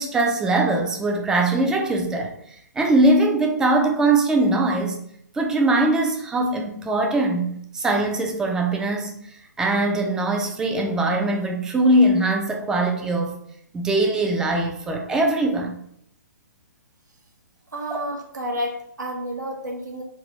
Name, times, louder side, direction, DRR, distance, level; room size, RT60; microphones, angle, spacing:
voice 1, 0.0-2.4 2.8-5.0 5.3-9.1 9.6-13.4 13.7-15.8 17.9-18.0, right 2 dB, 5° right, 2 dB, 0.3 m, -21 dB
voice 2, 17.7-20.0, equal, 70° right, 0 dB, 0.7 m, -30 dB
3.4 x 2.3 x 4.0 m, 0.69 s
figure-of-eight pair, 125°, 10 cm